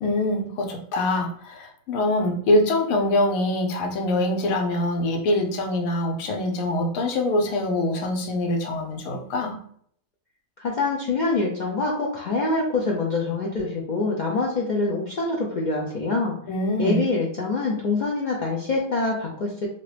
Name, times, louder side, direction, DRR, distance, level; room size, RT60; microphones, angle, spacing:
voice 1, 0.0-9.6 16.5-17.0, left 1 dB, 85° left, 3 dB, 1.1 m, -24 dB
voice 2, 10.6-16.3 16.8-19.7, left 3 dB, 65° left, -3 dB, 0.4 m, -25 dB
2.7 x 2.5 x 3.2 m, 0.62 s
omnidirectional pair, 1.4 m